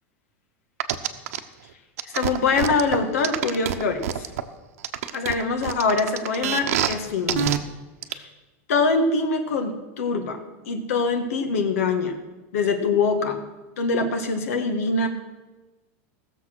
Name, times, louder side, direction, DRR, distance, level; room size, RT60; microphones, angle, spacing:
sound 1, 0.8-1.4 2.0-4.4 4.8-6.9 7.3-7.6 8.0-8.1, right 10 dB, 80° right, 0.9 m, -25 dB
voice 1, 2.0-4.3 5.1-7.5 8.1-8.3 8.7-10.4 10.6-12.2 12.5-13.4 13.8-15.1, left 4 dB, 90° left, 5 dB, 1.6 m, -24 dB
17.0 x 7.1 x 6.2 m, 1.1 s
supercardioid pair, 170°, 8 cm